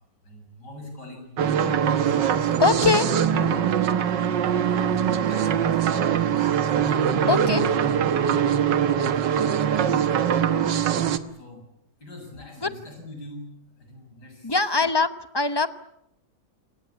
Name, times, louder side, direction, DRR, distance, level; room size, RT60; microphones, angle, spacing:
voice 1, 0.0-1.4 2.6-3.9 4.1-6.4 8.3-8.5 11.1-11.6 12.0-14.6, left 1 dB, 65° left, 3 dB, 8.6 m, -43 dB
sound 1, 1.4-11.2, right 8 dB, 75° right, 1.9 m, -22 dB
voice 2, 2.6-3.1 7.3-7.6 12.6-12.7 14.4-15.7, left 4 dB, 25° left, 12 dB, 0.6 m, -22 dB
28.5 x 19.0 x 8.7 m, 0.78 s
omnidirectional pair, 1.9 m